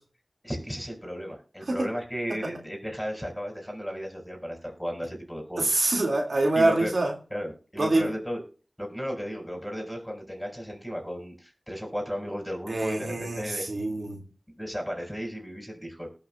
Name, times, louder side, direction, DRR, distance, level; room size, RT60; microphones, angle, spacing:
voice 1, 0.4-5.7 6.5-6.9 7.3-8.4 8.8-13.6 14.6-16.1, equal, 5° left, 2 dB, 6.0 m, -34 dB
voice 2, 5.6-7.1 7.8-8.1 12.7-14.2, right 2 dB, 80° right, 1 dB, 2.0 m, -25 dB
19.5 x 6.5 x 2.3 m, 0.36 s
wide cardioid pair, 45°, 0 cm